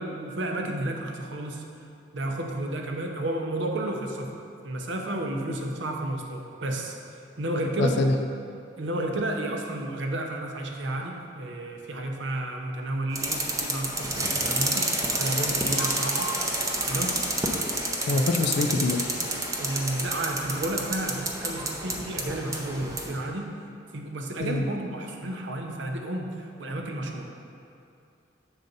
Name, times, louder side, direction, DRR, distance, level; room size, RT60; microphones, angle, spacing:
voice 1, 0.0-1.9 2.1-4.3 4.6-7.0 7.4-8.0 8.8-16.4 16.9-17.2 19.5-23.6 23.9-27.3, right 1 dB, 70° right, 2 dB, 0.7 m, -32 dB
voice 2, 7.8-8.1 18.1-19.1 24.4-24.7, left 2 dB, 60° left, 5 dB, 0.4 m, -24 dB
sound 1, 13.1-23.1, right 2 dB, 15° right, 0.6 m, -29 dB
7.4 x 4.0 x 5.3 m, 2.5 s
head